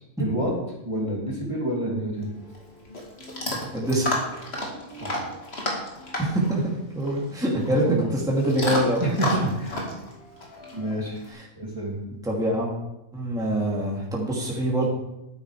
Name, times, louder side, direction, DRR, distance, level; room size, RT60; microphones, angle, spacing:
voice 1, 0.2-0.5 0.8-2.3 5.0-5.2 7.8-8.1 9.0-9.9 10.7-11.2 11.6-12.0, right 1 dB, 20° right, -3 dB, 2.7 m, -28 dB
Chewing mastication / Dog, 2.2-11.3, left 1 dB, 45° left, 2.5 m, -32 dB
voice 2, 3.7-4.1 6.2-6.6 6.9-7.8 8.1-9.0 12.2-12.7 13.1-14.9, right 1 dB, 5° right, -4 dB, 2.5 m, -24 dB
12.0 x 9.6 x 4.9 m, 0.88 s
omnidirectional pair, 1.4 m